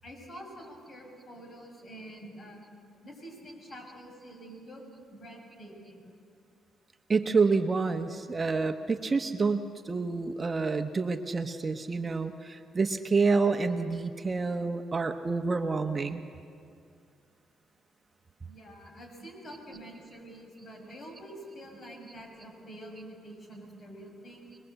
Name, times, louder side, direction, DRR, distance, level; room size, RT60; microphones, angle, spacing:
voice 1, 0.0-2.6 3.0-4.8 5.1-6.1 18.5-24.5, right 1 dB, 50° left, 1 dB, 6.8 m, -47 dB
voice 2, 7.1-16.2, right 4 dB, 30° right, 7 dB, 1.1 m, -28 dB
25.0 x 20.5 x 8.2 m, 2.4 s
cardioid pair, 90°, 0 cm